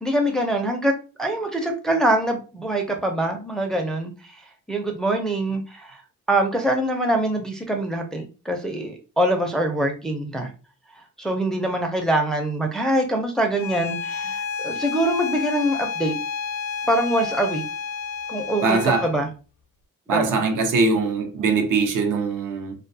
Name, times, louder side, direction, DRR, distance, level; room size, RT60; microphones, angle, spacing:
voice 1, 0.0-0.9 1.2-4.1 4.7-6.0 6.3-10.5 11.2-16.2 16.9-17.6 18.3-19.3 20.1-20.3, right 1 dB, ahead, 0.4 m, -24 dB
Bowed string instrument, 13.6-19.2, left 6 dB, 85° left, 0.5 m, -30 dB
voice 2, 18.6-19.1 20.1-22.7, right 4 dB, 70° right, 0.7 m, -22 dB
2.3 x 2.3 x 2.6 m
cardioid pair, 95°, 33 cm